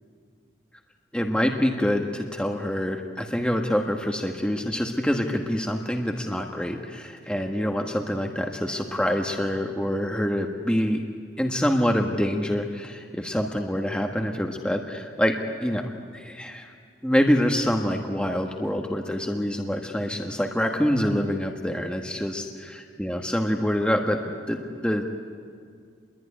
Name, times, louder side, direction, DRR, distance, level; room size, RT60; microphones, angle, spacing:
voice 1, 1.1-11.0 11.4-16.7 17.0-22.4 23.0-24.2 24.5-25.1, equal, 5° left, 2 dB, 1.3 m, -26 dB
27.5 x 21.5 x 9.9 m, 2.2 s
head